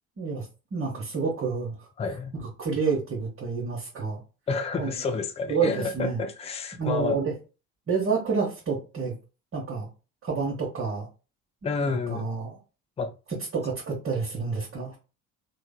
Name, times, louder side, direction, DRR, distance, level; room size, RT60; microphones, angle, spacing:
voice 1, 0.7-1.9 2.6-4.2 4.8-4.9 5.5-6.2 6.7-7.3 7.9-9.2 9.5-9.9 10.2-11.1 11.8-12.6 13.5-15.0, right 5 dB, 30° right, 1.1 m, -29 dB
voice 2, 2.0-2.3 4.5-7.2 11.6-12.3 13.0-13.1, left 4 dB, 15° left, 0.4 m, -29 dB
3.1 x 2.1 x 3.5 m
figure-of-eight pair, 50°, 43 cm